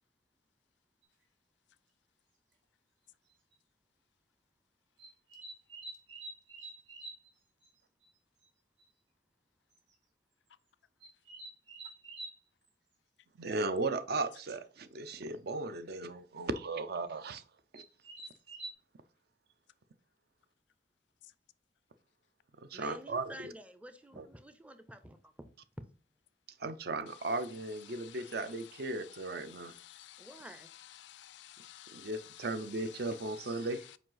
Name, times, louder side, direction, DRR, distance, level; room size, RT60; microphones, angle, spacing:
sound 1, 1.0-1.1 2.5-2.6 3.3-3.5 5.0-7.3 7.6-7.7 8.0-8.1 8.4-8.5 8.8-8.9 9.7-9.9 11.0-12.4 14.5-14.6 14.8-15.2 17.1-17.2 17.7-18.7, right 2 dB, 80° right, 1.8 m, -47 dB
voice 1, 13.4-17.4 17.7-17.8 22.7-23.3 24.2-24.3 26.6-29.7 31.9-33.8, right 2 dB, 60° right, 0.5 m, -36 dB
voice 2, 22.7-25.5 30.2-30.7, right 1 dB, 10° right, 0.5 m, -50 dB
voice 3, 27.9-28.4 29.4-30.4 31.0-32.5 33.1-33.4, left 13 dB, 75° left, 0.4 m, -53 dB
5.1 x 4.7 x 3.9 m
head